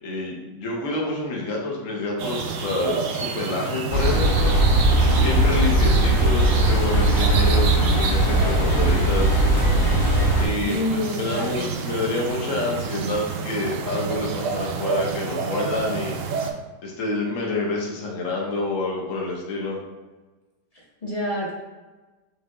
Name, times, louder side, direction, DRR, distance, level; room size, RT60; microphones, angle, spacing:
voice 1, 0.0-4.6 5.2-9.4 10.4-16.2 16.8-19.8, left 2 dB, 55° left, -2 dB, 1.2 m, -28 dB
sound 1, 2.2-16.5, right 5 dB, 85° right, 0.7 m, -29 dB
sound 2, 3.9-10.5, right 1 dB, 85° left, 1.8 m, -19 dB
voice 2, 10.6-11.6 20.7-21.5, left 1 dB, 25° left, -5 dB, 1.0 m, -28 dB
5.5 x 3.4 x 2.3 m, 1.2 s
omnidirectional pair, 1.9 m